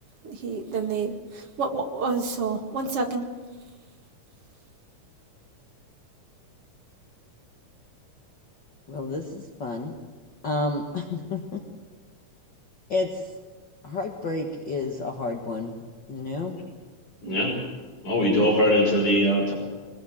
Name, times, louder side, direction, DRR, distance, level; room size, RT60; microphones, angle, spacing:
voice 1, 0.2-3.2, right 4 dB, 50° right, 3 dB, 2.7 m, -29 dB
voice 2, 8.9-9.9 10.4-11.6 12.9-13.1 13.8-15.7 16.1-16.6, left 3 dB, 40° left, 2 dB, 1.9 m, -30 dB
voice 3, 17.2-17.5 18.0-19.5, equal, 70° left, 0 dB, 7.1 m, -21 dB
24.5 x 20.5 x 7.8 m, 1.3 s
omnidirectional pair, 3.7 m